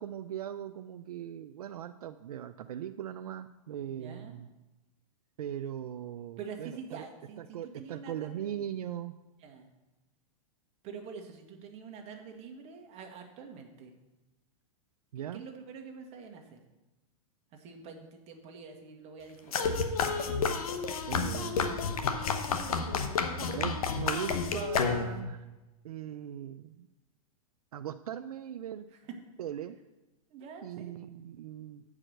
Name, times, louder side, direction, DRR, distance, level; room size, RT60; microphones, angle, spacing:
voice 1, 0.0-4.5 5.4-7.0 7.4-9.1 15.1-15.4 21.1-22.0 23.4-25.4 25.8-26.9 27.7-28.9 29.4-29.7 30.6-31.8, right 10 dB, 85° right, 10 dB, 0.4 m, -39 dB
voice 2, 3.9-4.5 6.4-8.7 9.4-9.7 10.8-13.9 15.1-16.6 17.5-19.7 28.9-29.2 30.3-30.9, right 5 dB, 35° right, 3 dB, 1.4 m, -46 dB
sound 1, 19.5-25.3, left 5 dB, 75° left, 1.0 m, -30 dB
8.6 x 4.9 x 6.4 m, 1.0 s
hypercardioid pair, 130°, 19 cm